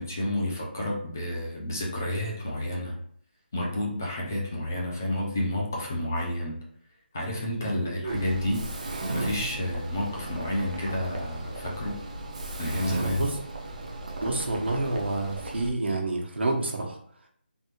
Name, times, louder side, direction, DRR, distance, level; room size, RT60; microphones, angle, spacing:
voice 1, 0.0-3.0 3.5-6.6 7.1-8.6 9.1-12.0 12.6-13.3, left 1 dB, 15° left, -3 dB, 0.3 m, -30 dB
Mechanisms, 8.1-15.7, right 2 dB, 40° right, 0.5 m, -35 dB
voice 2, 14.2-17.0, right 2 dB, 75° right, 0 dB, 1.0 m, -28 dB
3.4 x 2.4 x 2.9 m, 0.62 s
figure-of-eight pair, 175°, 6 cm